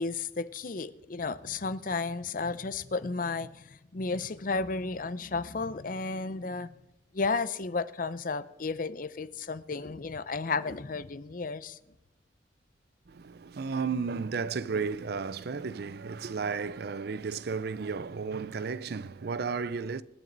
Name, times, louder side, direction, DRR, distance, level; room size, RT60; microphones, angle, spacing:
voice 1, 0.0-6.7 7.1-11.8, left 4 dB, 45° left, 0.6 m, -33 dB
voice 2, 13.1-20.0, right 5 dB, 55° right, 0.5 m, -33 dB
25.5 x 9.1 x 4.0 m
head